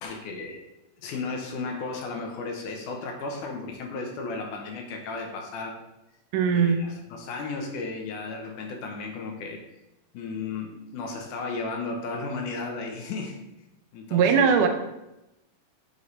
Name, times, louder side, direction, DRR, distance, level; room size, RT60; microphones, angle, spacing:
voice 1, 0.0-0.6 1.0-5.7 6.5-9.6 10.1-13.4 13.9-14.7, left 3 dB, 80° left, 2 dB, 2.3 m, -34 dB
voice 2, 6.3-6.8 14.1-14.7, right 6 dB, 80° right, 5 dB, 2.2 m, -20 dB
7.9 x 4.0 x 3.2 m, 0.92 s
omnidirectional pair, 3.6 m